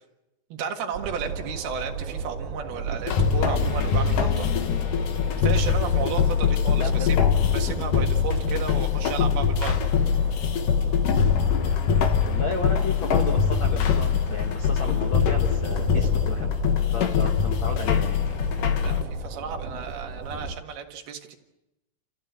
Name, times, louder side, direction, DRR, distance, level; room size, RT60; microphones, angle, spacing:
voice 1, 0.5-4.5 5.4-9.8 18.5-21.4, right 7 dB, 75° right, 4 dB, 3.6 m, -34 dB
Train, 0.9-20.6, right 4 dB, 55° right, 3.1 m, -35 dB
sound 1, 3.1-19.0, left 7 dB, 65° left, 2.7 m, -23 dB
voice 2, 6.7-7.4 12.2-16.5 16.9-18.2, left 3 dB, 90° left, 3 dB, 1.1 m, -34 dB
30.0 x 14.5 x 8.2 m, 0.96 s
omnidirectional pair, 4.6 m